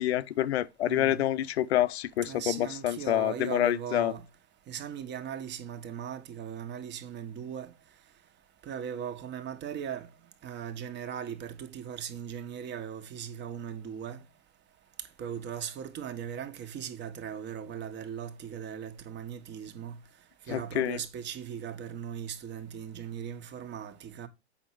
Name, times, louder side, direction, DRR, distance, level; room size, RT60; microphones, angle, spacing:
voice 1, 0.0-4.1 20.5-21.0, left 13 dB, 70° left, 0.7 m, -27 dB
voice 2, 0.8-1.2 2.2-4.2 4.7-7.7 8.6-10.1 10.4-14.2 15.2-20.0 20.5-24.3, right 8 dB, 30° right, 1.4 m, -38 dB
7.9 x 5.8 x 4.6 m
hypercardioid pair, 100°, 33 cm